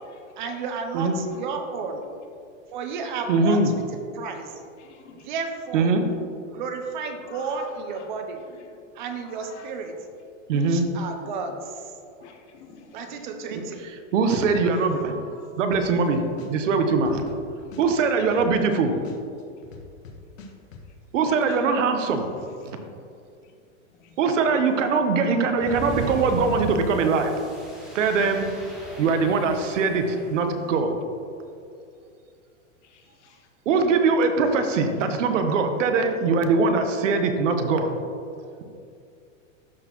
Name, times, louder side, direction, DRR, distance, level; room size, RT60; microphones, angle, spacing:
voice 1, 0.4-2.0 2.7-3.6 3.9-4.5 5.1-5.9 6.5-8.4 8.9-9.9 10.5-11.9 12.9-13.8 18.3-18.6, right 5 dB, 40° right, 6 dB, 0.6 m, -33 dB
voice 2, 3.3-3.7 5.7-6.0 10.5-10.9 13.5-13.6 14.1-15.2 15.6-16.2 16.5-17.3 17.8-18.9 21.1-22.3 24.2-27.3 27.9-28.5 29.0-30.9 33.7-37.9, right 4 dB, 70° right, 6 dB, 1.0 m, -22 dB
voice 3, 4.6-5.3 7.3-8.1 8.5-8.8 9.2-9.7 11.0-11.1 12.2-13.3 13.5-13.6 14.6-15.0 15.3-15.6 17.6-17.7 21.2-21.6 22.1-22.9 23.9-24.2 30.6-30.8 32.8-33.5 34.9-35.2, left 5 dB, 60° left, 3 dB, 1.1 m, -50 dB
sound 1, 15.7-16.1 16.4-18.7 19.0-20.8, left 4 dB, 85° left, 1.4 m, -43 dB
sound 2, 25.6-30.5, right 1 dB, ahead, 0.7 m, -37 dB
12.5 x 4.2 x 3.0 m, 2.4 s
supercardioid pair, 165°, 39 cm